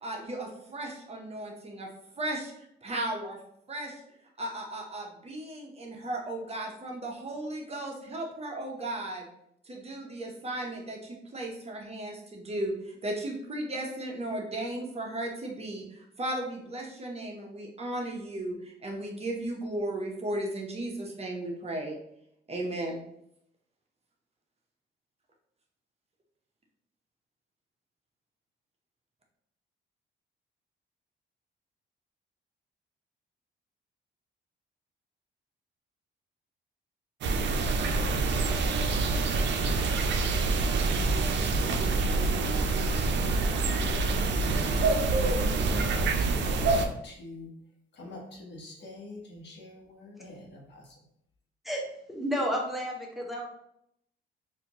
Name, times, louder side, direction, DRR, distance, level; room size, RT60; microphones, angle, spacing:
voice 1, 0.0-1.9 2.2-3.4 3.7-4.0 4.4-9.3 9.7-22.0 22.5-23.0, right 1 dB, 30° right, 0 dB, 0.9 m, -35 dB
sound 1, 37.2-46.9, right 3 dB, 65° right, 0.5 m, -26 dB
voice 2, 41.7-43.4 44.3-47.5 47.9-50.9, left 1 dB, 60° left, -1 dB, 1.2 m, -44 dB
voice 3, 52.1-53.5, equal, ahead, -1 dB, 0.9 m, -31 dB
4.2 x 2.6 x 2.9 m, 0.74 s
cardioid pair, 90°, 20 cm